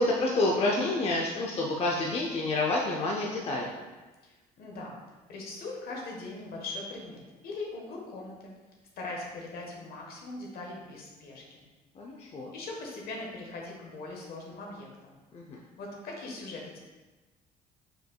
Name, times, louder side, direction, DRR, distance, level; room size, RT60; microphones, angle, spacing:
voice 1, 0.0-3.7 12.0-12.5 15.3-15.6, left 2 dB, 35° left, -2 dB, 0.5 m, -28 dB
voice 2, 4.2-5.0 5.3-8.5 9.0-11.7 12.5-15.2 15.8-16.8, left 2 dB, 65° left, -1 dB, 1.2 m, -40 dB
5.1 x 4.5 x 2.3 m, 1.2 s
cardioid pair, 110°, 17 cm